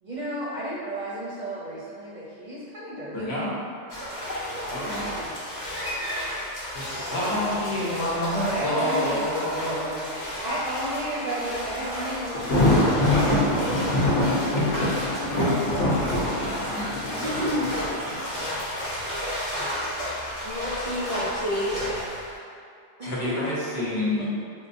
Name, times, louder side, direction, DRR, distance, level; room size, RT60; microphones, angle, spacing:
voice 1, 0.0-3.3 4.9-5.3 7.0-9.2 10.4-14.1 16.3-16.7 19.6-20.0 24.1-24.4, right 1 dB, 45° right, -8 dB, 0.7 m, -34 dB
voice 2, 3.1-3.5 4.7-5.2 6.7-10.1 16.7-17.7 23.0-24.3, left 1 dB, 65° left, -6 dB, 1.0 m, -28 dB
sound 1, 3.9-22.4, equal, 20° left, 0.9 m, -32 dB
sound 2, 5.5-6.8 7.8-7.9 8.6-8.7, equal, 50° left, 0.7 m, -35 dB
Thunder, 12.3-18.2, left 1 dB, 85° left, 1.1 m, -24 dB
voice 3, 17.2-17.8 20.4-21.8 23.0-23.1, left 1 dB, 70° right, -7 dB, 0.3 m, -29 dB
4.4 x 2.1 x 2.5 m, 2.3 s
omnidirectional pair, 1.2 m